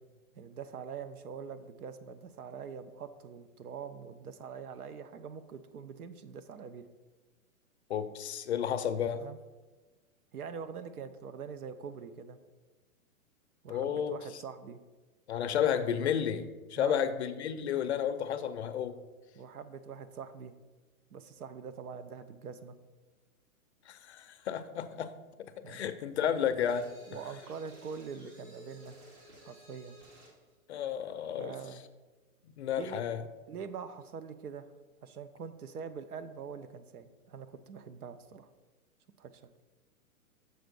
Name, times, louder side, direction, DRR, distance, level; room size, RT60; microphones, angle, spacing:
voice 1, 0.3-6.9 9.2-9.4 10.3-12.4 13.6-14.8 16.8-17.1 19.3-20.5 21.1-22.8 25.6-25.8 26.2-26.3 27.1-29.0 29.4-30.0 31.4-31.8 32.8-33.0 33.5-34.7 35.0-38.5 39.2-39.5, right 6 dB, 90° right, 11 dB, 0.8 m, -44 dB
voice 2, 7.9-9.3 13.7-14.2 15.3-19.0 23.9-25.1 25.4-26.9 30.7-31.6 32.6-33.3, left 8 dB, 50° left, 11 dB, 0.5 m, -32 dB
sound 1, 26.6-30.4, right 1 dB, 45° right, 2.2 m, -54 dB
6.6 x 4.5 x 5.3 m, 1.2 s
hypercardioid pair, 160°, 43 cm